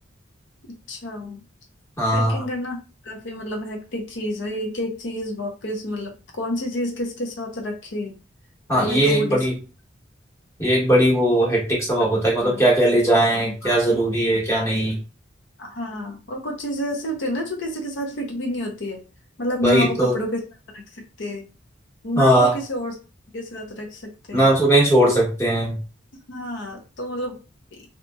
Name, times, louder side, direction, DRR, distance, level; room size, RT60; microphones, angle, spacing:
voice 1, 0.9-1.4 2.1-2.8 3.0-8.1 8.7-9.4 12.4-12.7 13.6-13.8 15.6-19.0 19.4-20.4 20.7-21.5 22.0-22.9 23.3-24.5 26.3-27.4, equal, 70° left, 2 dB, 0.6 m, -29 dB
voice 2, 2.0-2.4 8.7-9.6 10.6-15.0 19.6-20.1 22.2-22.6 24.3-25.8, right 1 dB, 15° left, -4 dB, 1.0 m, -19 dB
2.8 x 2.7 x 2.2 m, 0.33 s
head